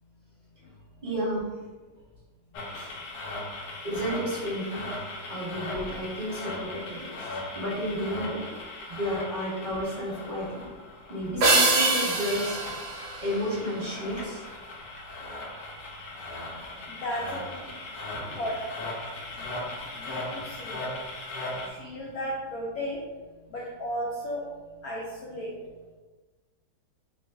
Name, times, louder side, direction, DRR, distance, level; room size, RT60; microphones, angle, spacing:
voice 1, 1.0-1.5 3.8-4.9 5.3-7.3 7.5-8.4 8.9-10.7 11.1-12.6 13.2-14.4 18.1-18.4, equal, 25° right, -11 dB, 1.2 m, -32 dB
sound 1, 2.5-21.7, left 2 dB, 70° left, 1.1 m, -38 dB
sound 2, 11.4-14.0, right 3 dB, 60° right, 1.0 m, -25 dB
voice 2, 16.4-17.5 18.4-18.9 19.4-19.5 19.9-20.9 21.6-23.2 23.5-24.5 24.8-25.6, equal, 90° left, -4 dB, 0.7 m, -35 dB
3.0 x 2.4 x 3.4 m, 1.3 s
omnidirectional pair, 2.1 m